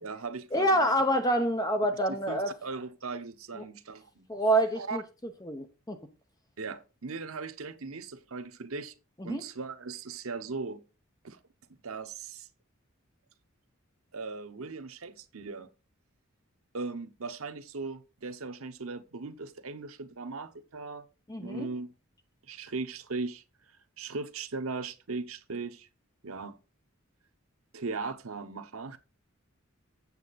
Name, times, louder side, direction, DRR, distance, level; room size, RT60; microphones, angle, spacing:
voice 1, 0.0-0.7 2.1-4.3 4.8-5.0 6.6-8.9 9.2-10.8 11.2-11.4 11.8-12.5 14.1-15.7 16.7-21.0 21.4-21.9 22.5-23.4 24.0-25.9 26.2-26.6 27.7-29.0, right 4 dB, 80° right, 0.9 m, -38 dB
voice 2, 0.5-2.5 4.3-5.0 5.4-6.0 9.2-9.4 21.3-21.7, right 1 dB, 20° left, 0.9 m, -27 dB
8.4 x 7.5 x 4.1 m
head